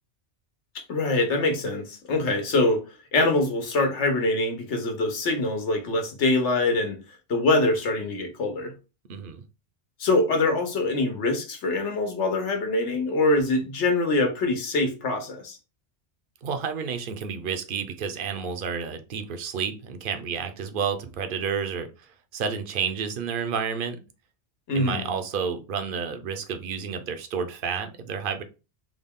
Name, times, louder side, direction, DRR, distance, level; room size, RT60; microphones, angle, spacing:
voice 1, 0.9-2.8 3.1-7.0 7.3-8.7 10.0-15.6 24.7-25.1, left 2 dB, 80° left, 1.2 m, -24 dB
voice 2, 9.1-9.4 16.4-24.0 24.7-28.4, right 6 dB, 55° right, 0.7 m, -30 dB
3.6 x 2.3 x 3.5 m
omnidirectional pair, 1.2 m